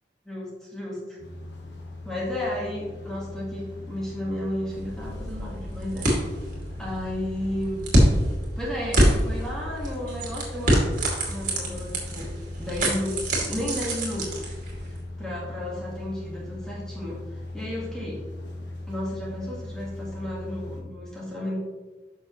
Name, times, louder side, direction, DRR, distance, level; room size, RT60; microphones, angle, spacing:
voice 1, 0.2-1.2 2.0-6.1 6.8-7.8 8.6-10.9 11.3-12.3 12.6-14.5 14.9-18.2 18.9-21.6, left 1 dB, 5° left, -5 dB, 1.7 m, -33 dB
sound 1, 1.2-20.8, left 2 dB, 85° left, 1.4 m, -39 dB
sound 2, 4.7-15.0, right 1 dB, 50° right, 2.4 m, -26 dB
10.5 x 6.3 x 3.1 m, 1.3 s
head